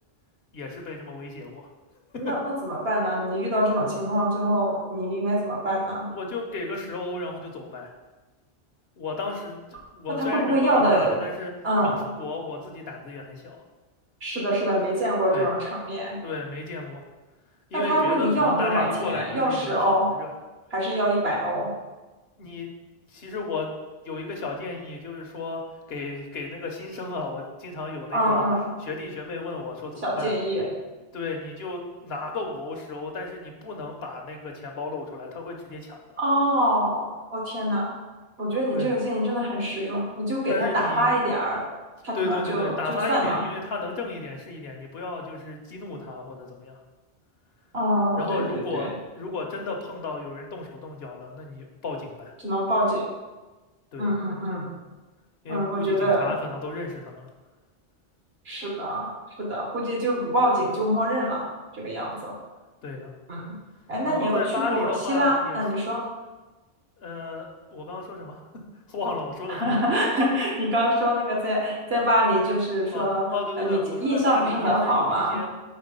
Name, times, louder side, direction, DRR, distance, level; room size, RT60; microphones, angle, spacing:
voice 1, 0.5-1.7 2.2-2.3 6.1-7.9 9.0-11.5 11.8-13.6 15.3-15.5 16.2-17.0 17.7-20.3 21.2-21.3 22.4-22.7 23.1-23.7 24.0-28.4 28.8-30.3 31.1-36.2 38.7-38.9 40.5-41.1 42.1-46.8 48.2-52.3 53.9-54.1 55.4-57.3 62.8-63.1 64.1-65.6 67.0-68.4 68.9-69.6 72.9-75.5, left 3 dB, 65° left, 2 dB, 1.0 m, -33 dB
voice 2, 2.1-6.1 10.2-11.2 11.6-12.0 14.2-16.2 17.7-20.1 20.7-21.7 28.1-28.7 30.0-30.7 36.2-37.9 38.4-41.7 42.0-43.4 47.7-48.9 52.4-53.0 54.0-54.7 55.5-56.3 58.4-59.1 59.4-61.5 61.7-62.3 63.3-63.5 63.9-64.4 64.7-66.0 69.5-73.3 73.6-75.4, equal, 65° right, -3 dB, 1.7 m, -24 dB
4.5 x 4.3 x 5.3 m, 1.2 s
omnidirectional pair, 1.1 m